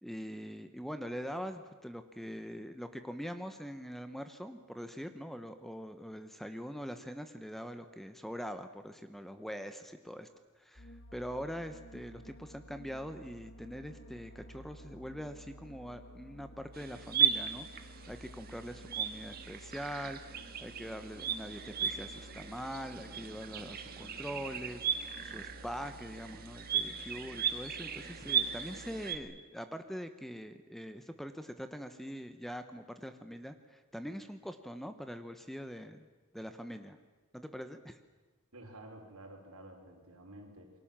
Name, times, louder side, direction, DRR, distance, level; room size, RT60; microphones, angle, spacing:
voice 1, 0.0-10.3 10.6-36.1 36.3-37.0 37.3-38.0, equal, ahead, 9 dB, 1.0 m, -43 dB
sound 1, 10.8-29.1, equal, 55° left, 1.9 m, -53 dB
sound 2, 16.7-29.2, right 7 dB, 45° right, 1.7 m, -36 dB
voice 2, 38.5-40.7, right 1 dB, 75° right, 2 dB, 5.4 m, -51 dB
28.5 x 23.0 x 7.5 m, 1.2 s
head